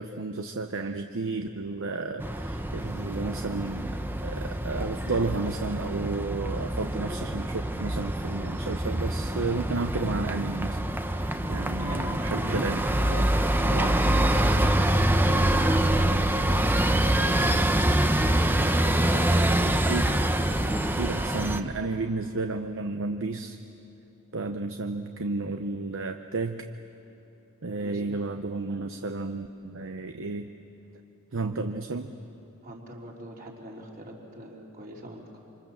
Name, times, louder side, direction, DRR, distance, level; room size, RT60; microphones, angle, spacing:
voice 1, 0.0-13.3 13.6-14.0 18.9-20.1 21.0-23.6 24.3-26.7 27.6-30.5 31.3-32.1, right 3 dB, 60° right, 6 dB, 0.8 m, -32 dB
sound 1, 2.2-21.6, right 1 dB, 10° right, 0.8 m, -25 dB
voice 2, 11.8-12.7 15.1-17.6 18.6-19.8 27.8-28.1 32.6-35.4, right 1 dB, 40° right, -2 dB, 3.7 m, -42 dB
26.5 x 26.0 x 7.3 m, 3.0 s
head